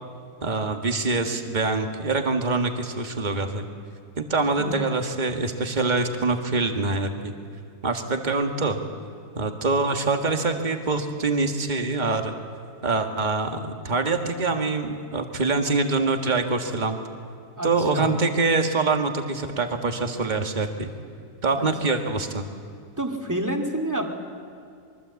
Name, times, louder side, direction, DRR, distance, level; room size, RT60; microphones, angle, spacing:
voice 1, 0.4-3.6 4.2-7.3 7.8-8.8 9.4-12.3 12.8-17.0 17.6-20.9 21.4-22.4, right 3 dB, 30° right, 5 dB, 1.9 m, -25 dB
voice 2, 17.6-18.1 23.0-24.1, right 1 dB, 10° right, 2 dB, 2.5 m, -28 dB
24.5 x 23.5 x 8.3 m, 2.4 s
omnidirectional pair, 1.6 m